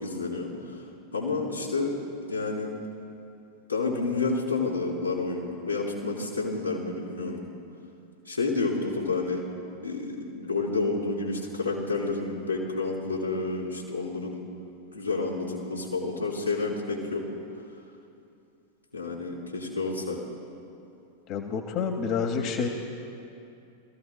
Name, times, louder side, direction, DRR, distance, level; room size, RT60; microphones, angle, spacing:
voice 1, 0.0-0.8 1.1-1.9 2.3-2.7 3.7-7.5 8.3-9.4 9.8-14.4 14.9-17.2 18.9-20.2, left 3 dB, 85° left, -6 dB, 3.6 m, -29 dB
voice 2, 21.3-22.7, left 6 dB, 40° left, 3 dB, 1.1 m, -28 dB
25.5 x 15.0 x 2.3 m, 2.6 s
figure-of-eight pair, 90°, 0 cm